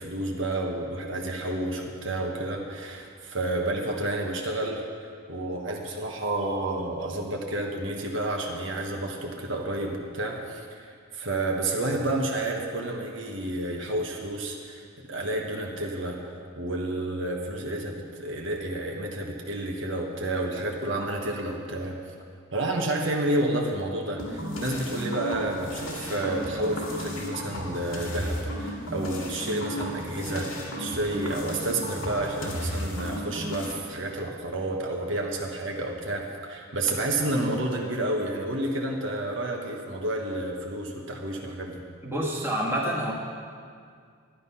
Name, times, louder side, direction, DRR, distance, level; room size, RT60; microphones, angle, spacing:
voice 1, 0.0-4.8 5.3-22.1 22.5-30.5 30.8-41.8, right 1 dB, 65° right, 0 dB, 1.4 m, -30 dB
sound 1, 24.2-33.7, equal, 75° left, 2.2 m, -34 dB
voice 2, 42.0-43.1, equal, 10° right, -3 dB, 1.5 m, -27 dB
11.5 x 10.5 x 5.7 m, 2.1 s
head